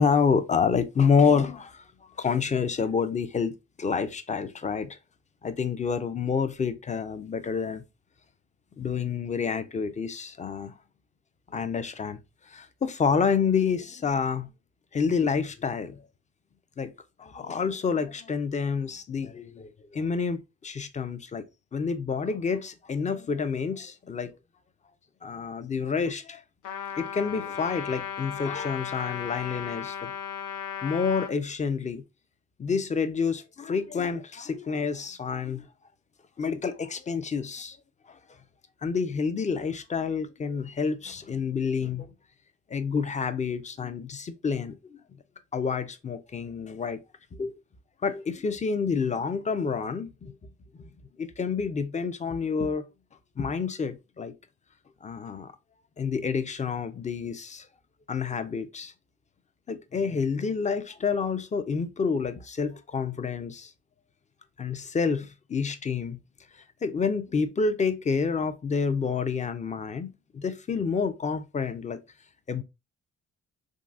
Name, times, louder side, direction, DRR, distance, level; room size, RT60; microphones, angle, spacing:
voice 1, 0.0-1.8 2.2-3.5 3.8-5.0 5.4-7.8 8.8-10.8 11.5-12.2 12.5-14.5 14.9-16.0 16.8-16.9 17.2-21.4 21.7-24.3 25.2-26.4 27.0-30.1 30.8-32.0 32.6-35.7 36.4-37.8 38.1-38.2 38.8-42.1 42.7-45.0 45.5-47.0 47.3-47.5 48.0-50.3 51.2-52.8 53.4-54.3 55.0-55.5 56.0-57.7 58.1-58.9 59.7-63.7 64.6-66.2 66.8-72.0 72.5-72.6, left 5 dB, 25° left, 0.4 m, -28 dB
Trumpet, 26.6-31.3, left 8 dB, 85° left, 0.7 m, -36 dB
3.6 x 2.3 x 2.4 m
cardioid pair, 90°, 30 cm